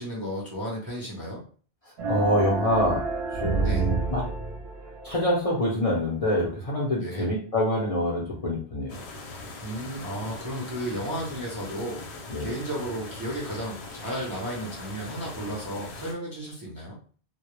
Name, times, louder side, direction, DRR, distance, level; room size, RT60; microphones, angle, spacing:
voice 1, 0.0-1.4 3.6-3.9 7.0-7.3 9.6-12.0 12.4-17.0, equal, 30° right, -4 dB, 0.4 m, -33 dB
sound 1, 2.0-5.2, right 4 dB, 65° right, 0.8 m, -29 dB
voice 2, 2.1-3.0 3.3-4.2 5.0-9.0 12.3-12.5, left 1 dB, 45° left, -4 dB, 0.5 m, -26 dB
sound 2, 8.9-16.1, left 2 dB, 80° left, 0.8 m, -41 dB
2.1 x 2.0 x 2.9 m, 0.41 s
omnidirectional pair, 1.1 m